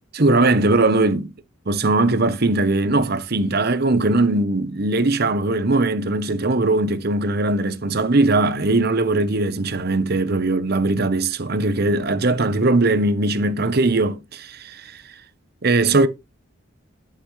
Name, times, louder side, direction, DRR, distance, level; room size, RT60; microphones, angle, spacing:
voice 1, 0.1-1.3 1.7-15.0 15.6-16.1, right 2 dB, 50° right, 0.9 m, -20 dB
12.0 x 6.0 x 3.2 m
head